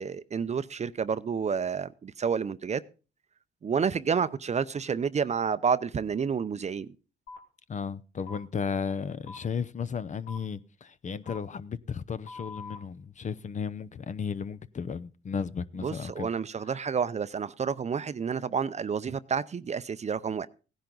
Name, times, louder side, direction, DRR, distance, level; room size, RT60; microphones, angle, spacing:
voice 1, 0.0-2.8 3.6-6.9 15.8-20.5, right 6 dB, 35° right, 0.6 m, -29 dB
sound 1, 7.3-7.4 8.3-8.4 9.3-9.4 10.3-10.4 11.2-11.4 12.2-12.8, left 4 dB, 75° left, 2.2 m, -43 dB
voice 2, 7.7-16.3, left 6 dB, 40° left, 0.7 m, -34 dB
16.5 x 10.5 x 3.9 m
cardioid pair, 90°, 20 cm